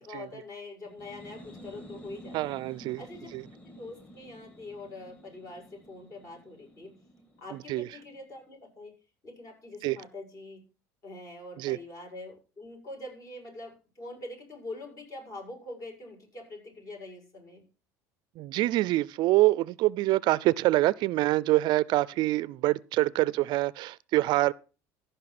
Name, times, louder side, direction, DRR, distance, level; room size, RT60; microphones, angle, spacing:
voice 1, 0.0-2.5 3.0-3.3 3.6-7.0 7.4-9.0 9.2-10.6 11.0-17.6, left 2 dB, 40° left, 6.6 m, -44 dB
sound 1, 0.8-8.4, equal, 15° left, 2.6 m, -51 dB
voice 2, 2.3-3.0 3.3-3.4 7.5-7.9 9.8-10.0 11.6-11.8 18.4-24.5, right 17 dB, 60° right, 0.4 m, -25 dB
14.5 x 5.5 x 5.9 m
supercardioid pair, 90°, 9 cm